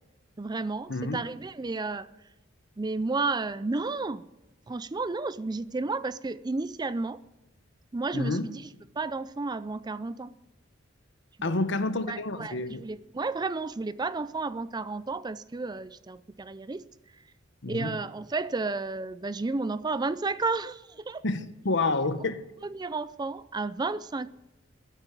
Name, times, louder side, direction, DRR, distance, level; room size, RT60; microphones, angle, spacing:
voice 1, 0.4-2.1 2.8-4.2 4.7-7.2 7.9-8.6 9.0-10.3 11.4-11.6 12.1-16.9 17.7-21.2 22.6-24.3, right 3 dB, 20° right, 0.4 m, -32 dB
voice 2, 8.1-8.5 11.4-12.8 17.6-18.0 21.2-22.4, left 2 dB, 60° left, 1.1 m, -29 dB
15.0 x 9.0 x 9.1 m
head